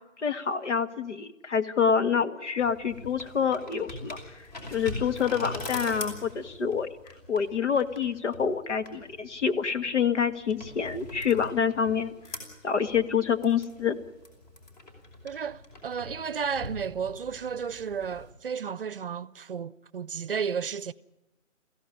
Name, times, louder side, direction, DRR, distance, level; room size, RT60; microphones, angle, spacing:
voice 1, 0.2-4.2 4.7-12.1 12.6-14.0, left 7 dB, 65° left, 1.9 m, -27 dB
sound 1, 2.6-18.3, left 1 dB, 35° left, 5.5 m, -43 dB
voice 2, 15.2-20.9, right 6 dB, 45° right, 0.7 m, -33 dB
21.5 x 16.0 x 9.9 m
hypercardioid pair, 165°, 38 cm